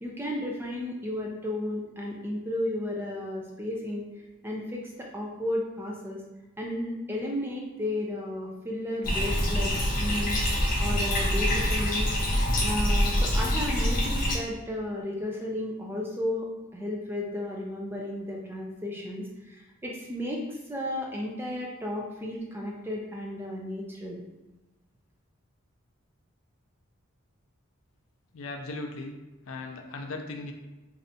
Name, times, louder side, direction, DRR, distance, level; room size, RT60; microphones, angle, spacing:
voice 1, 0.0-4.1 4.4-6.2 6.6-9.7 10.0-10.4 10.8-12.1 12.6-16.5 16.7-20.4 20.7-24.2, left 1 dB, 10° right, -1 dB, 0.4 m, -33 dB
Bathtub (filling or washing), 9.0-14.4, equal, 40° left, 0.7 m, -25 dB
voice 2, 28.3-29.1 29.5-30.5, left 2 dB, 70° left, 3 dB, 0.4 m, -37 dB
3.2 x 2.7 x 2.7 m, 1.1 s
head